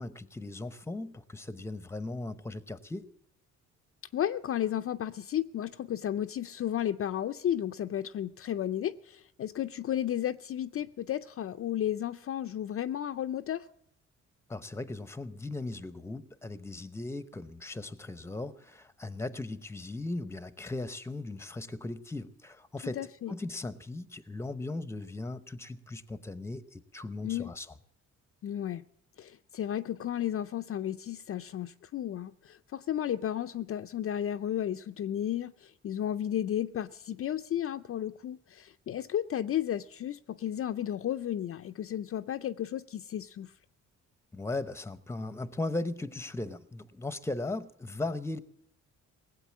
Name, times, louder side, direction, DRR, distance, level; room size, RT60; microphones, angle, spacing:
voice 1, 0.0-3.1 14.5-27.7 44.3-48.4, left 2 dB, 10° left, 0.8 m, -38 dB
voice 2, 4.1-13.7 23.0-23.3 27.2-27.5 28.4-28.8 29.2-43.5, left 11 dB, 45° left, 0.5 m, -33 dB
18.5 x 8.0 x 8.4 m
cardioid pair, 90°, 30 cm